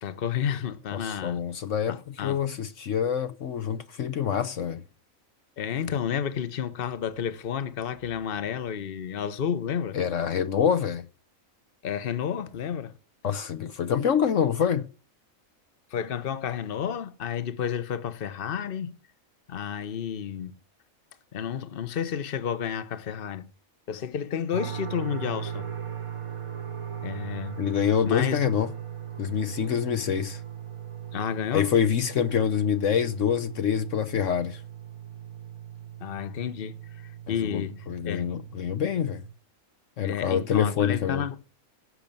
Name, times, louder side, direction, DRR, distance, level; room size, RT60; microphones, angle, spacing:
voice 1, 0.0-1.4 1.9-2.5 5.6-10.0 11.8-12.9 15.9-19.0 19.5-20.5 21.3-23.5 23.9-25.7 27.0-27.6 28.0-28.6 31.1-31.7 36.0-38.3 40.0-41.4, left 8 dB, 45° left, 1.1 m, -31 dB
voice 2, 0.9-4.8 9.9-11.0 13.2-14.9 27.6-28.7 29.2-30.4 31.5-34.6 37.3-39.2 40.0-41.3, left 8 dB, 65° left, 1.2 m, -26 dB
sound 1, 24.5-39.3, right 9 dB, 25° right, 0.8 m, -39 dB
16.0 x 6.7 x 8.7 m
omnidirectional pair, 1.4 m